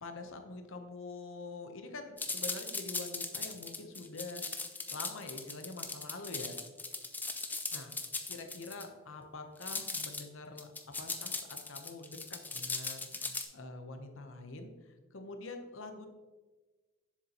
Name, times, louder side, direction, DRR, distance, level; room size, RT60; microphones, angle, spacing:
voice 1, 0.0-4.4 4.9-6.6 7.7-8.0 8.3-10.7 11.0-16.1, left 3 dB, 60° left, 6 dB, 0.8 m, -45 dB
sound 1, 2.2-8.8 9.6-10.2 10.6-13.4, left 3 dB, 10° left, 0.3 m, -38 dB
7.1 x 6.8 x 2.9 m, 1.3 s
head